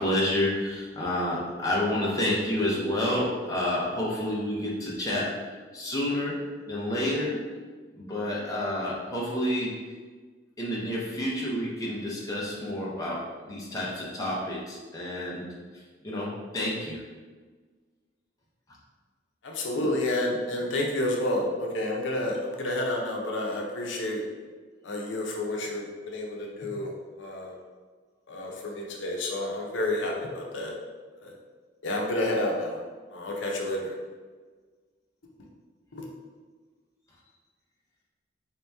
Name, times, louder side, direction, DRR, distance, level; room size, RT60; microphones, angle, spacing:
voice 1, 0.0-5.4 5.7-7.4 7.9-9.8 10.6-15.4 15.7-17.0, left 1 dB, 20° left, -6 dB, 0.7 m, -29 dB
voice 2, 19.4-24.2 24.8-26.9 27.2-27.5 28.3-30.7 31.2-31.3 31.8-32.8 33.1-33.9 35.9-36.0, left 1 dB, 85° left, -1 dB, 0.6 m, -30 dB
3.5 x 2.8 x 3.4 m, 1.4 s
head